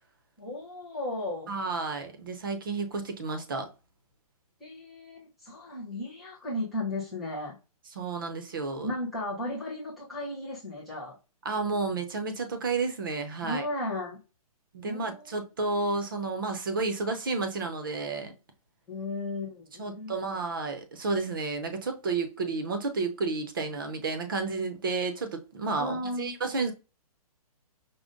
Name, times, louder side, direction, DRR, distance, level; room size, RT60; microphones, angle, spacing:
voice 1, 0.4-1.5 4.6-7.5 8.8-11.2 13.4-14.2 14.8-15.4 18.9-20.4 25.8-26.4, left 1 dB, ahead, 0.4 m, -35 dB
voice 2, 1.5-3.7 8.0-8.9 11.4-13.6 14.7-18.3 19.8-26.7, right 3 dB, 35° right, 0.6 m, -31 dB
5.1 x 2.1 x 3.6 m
hypercardioid pair, 175°, 19 cm